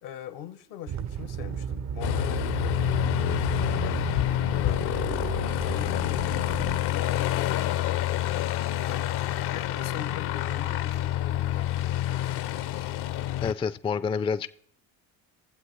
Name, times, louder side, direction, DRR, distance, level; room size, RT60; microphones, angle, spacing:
voice 1, 0.0-3.5 4.4-8.2 9.5-12.5, left 10 dB, 80° left, 11 dB, 1.1 m, -42 dB
sound 1, 0.9-6.8, right 9 dB, 40° right, 0.5 m, -34 dB
Aircraft, 2.0-13.5, left 13 dB, 60° left, 0.6 m, -28 dB
Female singing, 2.3-8.0, right 2 dB, 60° right, 1.1 m, -48 dB
voice 2, 13.4-14.5, left 6 dB, 15° left, 14 dB, 0.3 m, -28 dB
21.0 x 7.6 x 3.1 m, 0.65 s
supercardioid pair, 65°, 43 cm